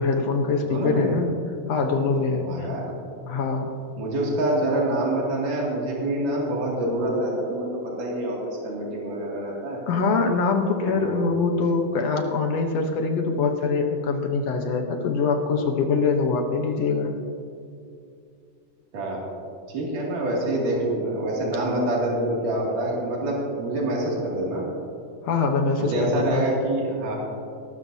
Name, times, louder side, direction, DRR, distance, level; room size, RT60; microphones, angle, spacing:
voice 1, 0.0-1.3 1.7-2.7 3.3-3.7 9.9-17.1 25.2-26.4, left 4 dB, 65° left, 4 dB, 1.8 m, -23 dB
voice 2, 0.7-1.2 2.4-2.9 4.0-9.8 10.8-11.3 18.9-19.2 19.7-24.6 25.8-27.2, right 1 dB, 80° right, -4 dB, 4.0 m, -26 dB
21.0 x 13.0 x 2.7 m, 2.5 s
omnidirectional pair, 3.6 m